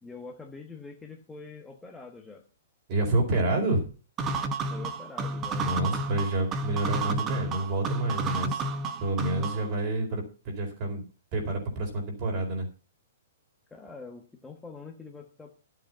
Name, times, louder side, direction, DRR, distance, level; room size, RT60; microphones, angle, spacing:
voice 1, 0.0-2.4 4.7-5.7 9.2-9.8 13.7-15.5, left 4 dB, 5° left, 1 dB, 1.2 m, -45 dB
voice 2, 2.9-3.9 5.5-8.6 9.0-11.0 11.3-12.7, right 2 dB, 35° right, 2 dB, 4.2 m, -28 dB
sound 1, 4.2-9.7, right 3 dB, 20° right, 1.0 m, -31 dB
11.5 x 7.7 x 5.8 m, 0.36 s
hypercardioid pair, 160°, 0 cm